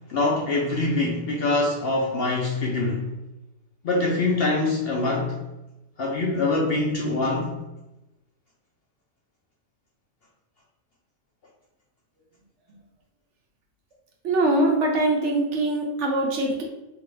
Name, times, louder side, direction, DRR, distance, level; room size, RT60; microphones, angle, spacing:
voice 1, 0.1-3.1 3.8-5.4 6.0-7.6, left 2 dB, 60° left, -2 dB, 0.7 m, -24 dB
voice 2, 14.2-16.6, right 2 dB, 60° right, 0 dB, 1.0 m, -22 dB
3.6 x 2.8 x 3.3 m, 0.97 s
omnidirectional pair, 1.4 m